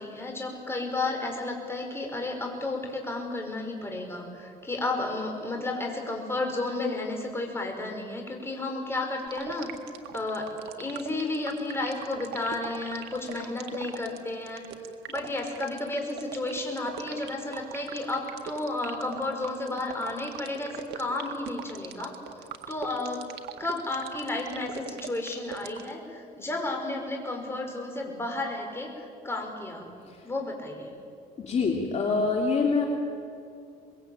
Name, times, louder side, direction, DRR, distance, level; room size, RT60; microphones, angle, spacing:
voice 1, 0.0-9.7 10.1-10.5 10.8-14.6 15.1-22.1 22.7-23.2 23.6-30.0 30.2-30.9, left 2 dB, 15° left, 2 dB, 5.6 m, -32 dB
sound 1, 9.3-25.9, right 11 dB, 80° right, 1.9 m, -40 dB
voice 2, 31.4-32.9, left 4 dB, 40° left, 0 dB, 2.9 m, -25 dB
24.5 x 21.5 x 8.8 m, 2.4 s
cardioid pair, 110°, 17 cm